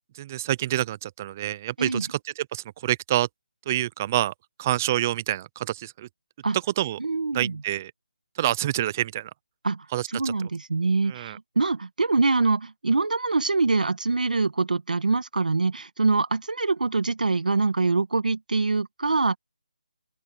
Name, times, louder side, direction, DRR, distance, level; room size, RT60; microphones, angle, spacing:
voice 1, 0.1-3.3 3.7-4.3 4.6-6.1 6.8-7.0 7.3-7.9 8.4-9.3 9.9-10.3 11.1-11.4, right 13 dB, 20° right, 0.5 m, -27 dB
voice 2, 7.0-7.6 9.6-19.4, right 3 dB, 80° right, 1.6 m, -24 dB
open air
hypercardioid pair, 170°, 4 cm